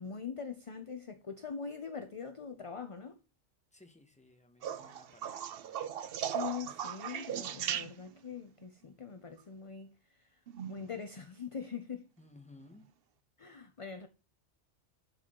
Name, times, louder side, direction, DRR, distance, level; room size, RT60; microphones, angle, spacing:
voice 1, 0.0-3.2 6.2-10.4 10.7-12.1 13.4-14.1, left 6 dB, 35° left, 0.6 m, -43 dB
voice 2, 3.7-5.9 12.2-12.8, left 2 dB, 5° left, 1.0 m, -58 dB
sound 1, 4.6-8.3 10.5-11.0 12.6-12.7, right 9 dB, 60° right, 0.8 m, -38 dB
11.0 x 4.7 x 3.7 m
omnidirectional pair, 1.2 m